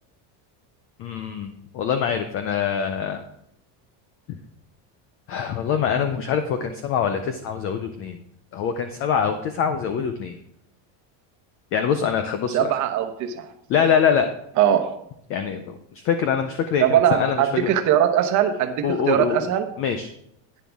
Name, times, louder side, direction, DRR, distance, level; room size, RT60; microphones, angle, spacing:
voice 1, 1.0-3.2 5.3-8.2 8.5-10.4 11.7-12.7 13.7-14.3 15.3-17.7 18.8-19.4 19.8-20.1, left 7 dB, 30° left, 8 dB, 0.4 m, -24 dB
voice 2, 12.5-13.5 14.6-15.0 16.8-19.7, right 10 dB, 40° right, 6 dB, 1.0 m, -21 dB
11.0 x 9.4 x 3.5 m, 0.73 s
cardioid pair, 175°, 47 cm